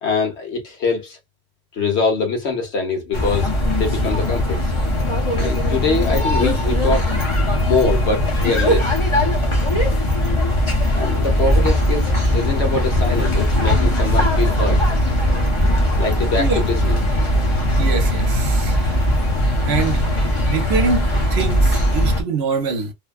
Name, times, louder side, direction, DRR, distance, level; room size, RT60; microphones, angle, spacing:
voice 1, 0.0-1.2 1.7-4.7 5.3-7.0 7.6-8.9 10.9-14.8 16.0-17.0, left 4 dB, 80° left, 1.3 m, -23 dB
sound 1, 3.1-22.2, left 1 dB, 30° left, 0.9 m, -19 dB
voice 2, 17.8-18.9 19.7-20.0 20.5-22.9, right 4 dB, 70° right, 1.0 m, -24 dB
3.2 x 2.2 x 2.4 m
omnidirectional pair, 1.1 m